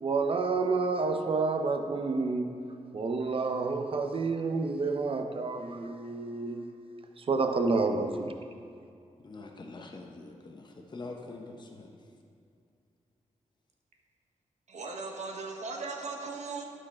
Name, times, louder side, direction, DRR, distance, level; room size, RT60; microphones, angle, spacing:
voice 1, 0.0-2.5 2.9-6.6 7.2-8.3, right 4 dB, 50° right, 0.7 m, -29 dB
voice 2, 9.2-11.9, left 3 dB, 35° left, 0.8 m, -45 dB
voice 3, 14.7-16.6, right 4 dB, 70° right, 1.1 m, -38 dB
11.5 x 4.9 x 4.3 m
cardioid pair, 80°, 12 cm